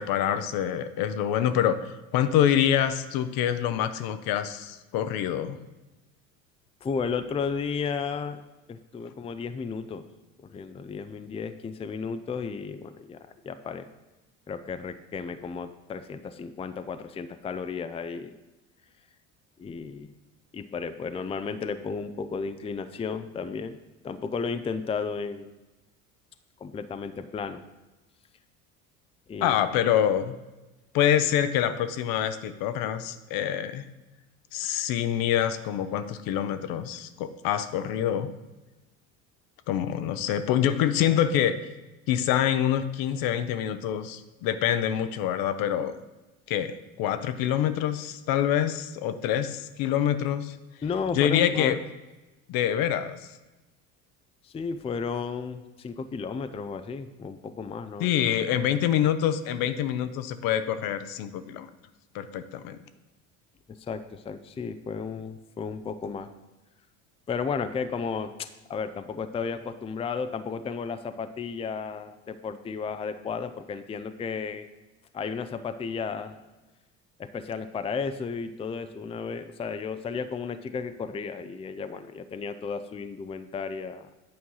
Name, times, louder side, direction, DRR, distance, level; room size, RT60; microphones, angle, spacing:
voice 1, 0.0-5.6 29.4-30.4 30.9-33.8 34.5-38.3 39.7-41.6 42.1-46.0 46.5-50.6 51.1-51.8 52.5-53.3 58.0-61.7 62.1-62.8, left 10 dB, 60° left, 11 dB, 0.8 m, -26 dB
voice 2, 6.8-8.4 8.7-10.1 10.4-13.9 14.5-18.3 19.6-20.1 20.5-23.8 24.0-25.5 26.6-27.6 29.3-29.5 50.8-51.8 54.4-58.7 63.8-66.3 67.3-74.7 75.1-76.4 77.2-84.1, left 5 dB, 15° left, 10 dB, 0.4 m, -33 dB
8.8 x 4.5 x 5.6 m, 1.1 s
hypercardioid pair, 80°, 39 cm